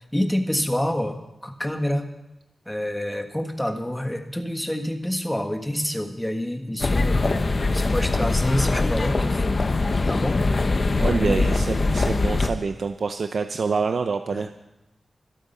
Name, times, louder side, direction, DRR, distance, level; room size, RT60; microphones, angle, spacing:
voice 1, 0.1-2.1 2.7-7.2 7.7-9.6 10.0-10.4 11.2-11.6 14.3-14.5, left 1 dB, 5° left, 4 dB, 1.5 m, -27 dB
sound 1, 6.8-12.5, left 3 dB, 40° left, 1.0 m, -22 dB
voice 2, 11.0-14.5, right 5 dB, 65° right, 7 dB, 0.6 m, -26 dB
25.5 x 8.7 x 5.6 m, 0.92 s
wide cardioid pair, 135°, 0 cm